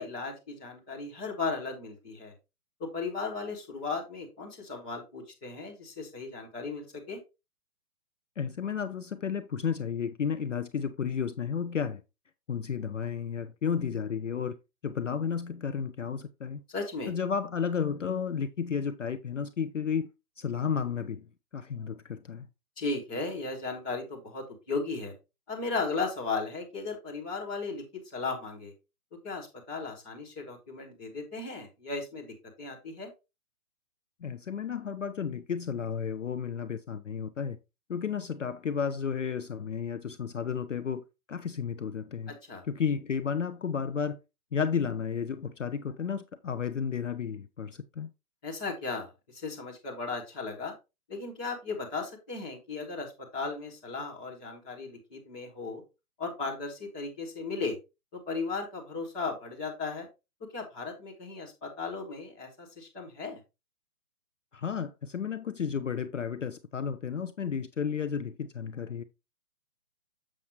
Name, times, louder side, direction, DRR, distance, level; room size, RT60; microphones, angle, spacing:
voice 1, 0.0-2.3 2.8-7.2 16.7-17.1 22.8-25.1 25.5-28.7 29.2-33.1 42.5-42.6 48.4-50.7 51.1-55.8 56.2-57.8 58.1-60.1 60.4-63.4, left 4 dB, 5° left, 1.0 m, -36 dB
voice 2, 8.4-12.0 12.5-14.6 14.8-16.6 17.1-20.1 20.4-21.3 21.5-22.5 34.2-37.6 37.9-42.4 42.7-44.2 44.5-48.1 64.5-69.0, left 7 dB, 55° left, 0.5 m, -32 dB
7.3 x 6.3 x 3.0 m
hypercardioid pair, 175°, 46 cm